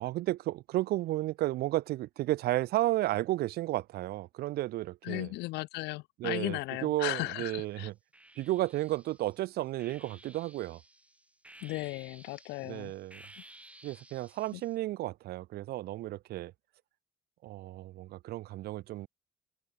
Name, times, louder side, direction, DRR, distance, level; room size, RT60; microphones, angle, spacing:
voice 1, 0.0-5.3 6.2-7.9 8.4-10.8 12.6-13.2 13.8-16.5 17.4-19.1, right 16 dB, 70° right, 0.6 m, -33 dB
voice 2, 5.0-7.9 11.6-12.9 14.5-14.6, left 22 dB, 85° left, 0.5 m, -36 dB
sound 1, 6.8-7.5 8.1-14.8, right 1 dB, 5° right, 3.2 m, -56 dB
cardioid pair, 110°, 17 cm